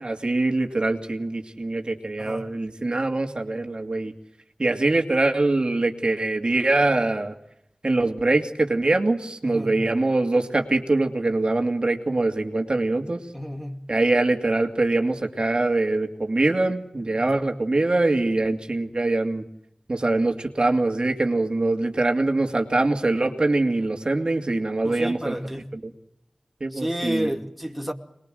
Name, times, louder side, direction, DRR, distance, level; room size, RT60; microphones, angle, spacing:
voice 1, 0.0-4.1 4.6-7.3 7.8-13.3 13.9-19.4 19.9-25.3 25.7-25.9 26.6-27.3, right 2 dB, 50° right, 2.5 m, -23 dB
voice 2, 9.4-9.8 13.3-13.8 17.2-17.5 24.8-25.7 26.7-27.9, equal, ahead, 2.4 m, -31 dB
26.5 x 21.5 x 7.8 m
wide cardioid pair, 65°, 2 cm